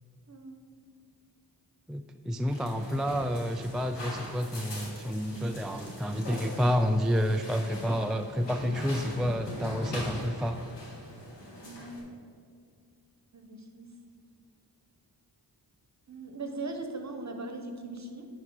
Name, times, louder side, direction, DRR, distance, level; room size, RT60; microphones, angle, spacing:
voice 1, 0.3-0.6 11.6-12.3 13.3-13.9 16.1-18.3, right 2 dB, 40° right, 5 dB, 1.1 m, -40 dB
voice 2, 1.9-10.6, equal, ahead, 6 dB, 0.3 m, -29 dB
sound 1, 2.5-12.0, left 1 dB, 80° left, 2.0 m, -41 dB
9.4 x 3.7 x 6.2 m, 2.1 s
cardioid pair, 50°, 42 cm